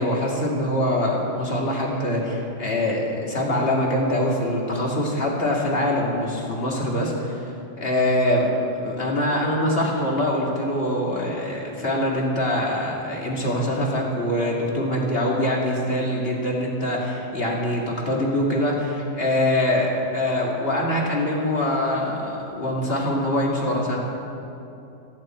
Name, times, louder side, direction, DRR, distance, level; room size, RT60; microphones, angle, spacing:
voice 1, 0.0-7.5 7.8-8.5 8.8-24.0, left 1 dB, 25° left, -2 dB, 1.4 m, -24 dB
18.5 x 14.0 x 4.4 m, 2.7 s
omnidirectional pair, 4.0 m